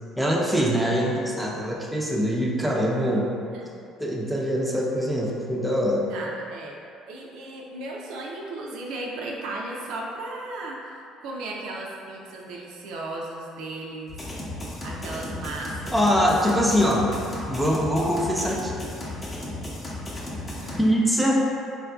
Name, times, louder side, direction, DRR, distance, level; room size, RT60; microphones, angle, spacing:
voice 1, 0.2-3.3 4.0-6.1 15.9-17.1 17.5-18.8 20.8-21.4, equal, 5° right, -3 dB, 0.5 m, -23 dB
voice 2, 6.1-6.8 7.1-14.2 14.5-16.3 20.6-20.9, right 2 dB, 75° right, -2 dB, 0.4 m, -36 dB
sound 1, 14.1-20.8, left 1 dB, 30° left, 0.7 m, -35 dB
3.7 x 2.4 x 2.3 m, 2.5 s
supercardioid pair, 75°, 0 cm